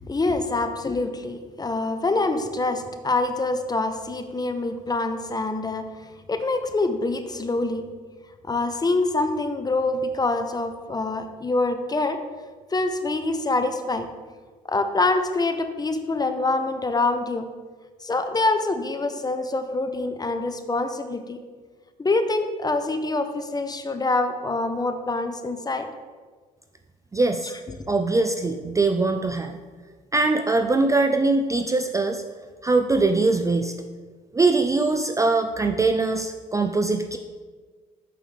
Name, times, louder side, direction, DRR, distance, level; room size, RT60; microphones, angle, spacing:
voice 1, 0.0-5.8 6.3-7.8 8.4-12.2 12.7-14.1 14.7-17.5 18.0-21.4 22.0-25.9, left 2 dB, 20° left, 8 dB, 0.7 m, -25 dB
voice 2, 27.1-27.5 27.9-29.6 30.1-32.2 32.6-33.7 34.3-37.2, right 3 dB, 15° right, 6 dB, 0.4 m, -22 dB
6.5 x 5.4 x 3.6 m, 1.5 s
hypercardioid pair, 65°, 19 cm